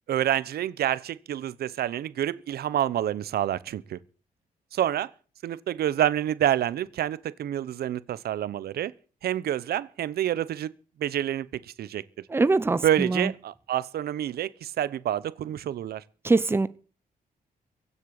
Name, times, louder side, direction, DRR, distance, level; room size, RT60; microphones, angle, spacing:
voice 1, 0.1-4.0 4.7-5.1 5.4-8.9 9.2-10.7 11.0-12.0 12.8-16.0, right 11 dB, 85° right, 0.9 m, -28 dB
voice 2, 12.3-13.3 16.2-16.7, right 3 dB, 15° right, 0.7 m, -23 dB
16.5 x 8.3 x 8.2 m
wide cardioid pair, 145°, 16 cm